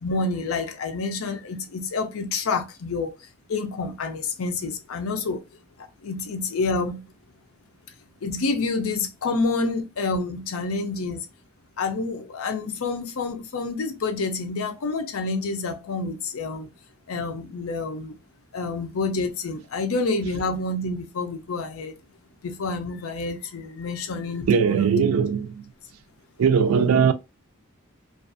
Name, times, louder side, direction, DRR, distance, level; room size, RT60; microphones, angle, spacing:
voice 1, 0.0-3.1 3.5-5.5 5.8-7.1 8.2-11.3 11.8-16.7 17.1-18.2 18.5-22.0 22.4-24.9, left 3 dB, 85° left, 0.5 m, -28 dB
voice 2, 24.5-25.6 26.4-27.1, right 6 dB, 90° right, 0.3 m, -19 dB
2.5 x 2.3 x 2.4 m
head